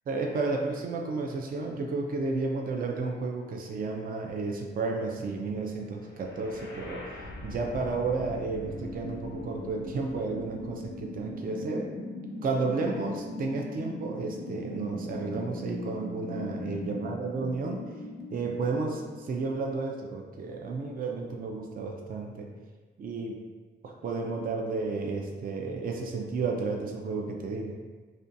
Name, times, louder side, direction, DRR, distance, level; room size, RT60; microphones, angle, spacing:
voice 1, 0.1-7.0 7.4-11.9 12.4-17.8 18.3-22.5 23.0-23.4 23.8-27.7, right 3 dB, 45° right, 1 dB, 0.4 m, -32 dB
sound 1, 6.1-20.1, left 2 dB, 75° left, 0.5 m, -40 dB
2.5 x 2.2 x 2.6 m, 1.4 s
supercardioid pair, 55°, 20 cm